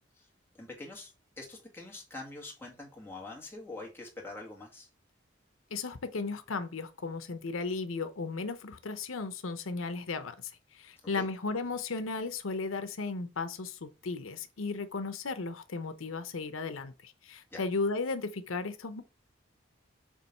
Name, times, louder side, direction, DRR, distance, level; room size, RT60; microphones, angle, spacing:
voice 1, 0.6-4.9 11.1-11.3 17.5-17.6, left 2 dB, 10° left, 1.9 m, -45 dB
voice 2, 5.7-10.3 10.7-19.0, left 4 dB, 90° left, 0.7 m, -35 dB
7.4 x 3.1 x 5.4 m
head